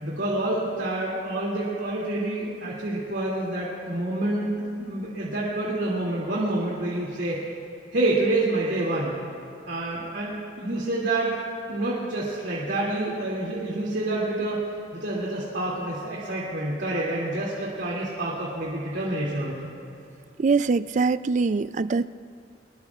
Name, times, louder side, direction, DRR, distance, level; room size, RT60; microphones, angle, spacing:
voice 1, 0.0-7.4 7.9-9.2 9.7-11.3 11.7-14.6 14.9-19.7, right 2 dB, 85° right, -6 dB, 2.6 m, -28 dB
voice 2, 20.4-22.1, right 4 dB, 40° right, 15 dB, 0.3 m, -23 dB
25.0 x 20.5 x 2.4 m, 2.7 s
head